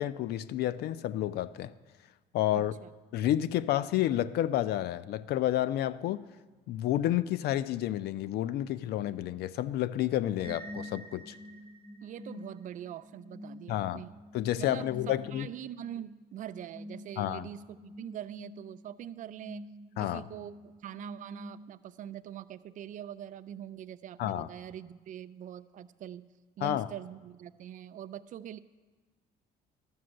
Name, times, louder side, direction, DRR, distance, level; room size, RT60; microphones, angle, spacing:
voice 1, 0.0-1.7 2.3-2.7 3.1-6.2 6.7-11.3 13.7-14.0 14.3-15.5 17.2-17.5 20.0-20.2 24.2-24.5 26.6-26.9, left 13 dB, 70° left, 16 dB, 0.4 m, -30 dB
voice 2, 2.5-2.9 12.0-14.1 14.6-19.6 20.0-26.3 26.6-28.6, right 10 dB, 50° right, 14 dB, 0.4 m, -43 dB
sound 1, 10.4-22.1, equal, 30° left, 4.6 m, -48 dB
12.5 x 6.9 x 6.4 m, 1.3 s
cardioid pair, 110°, 17 cm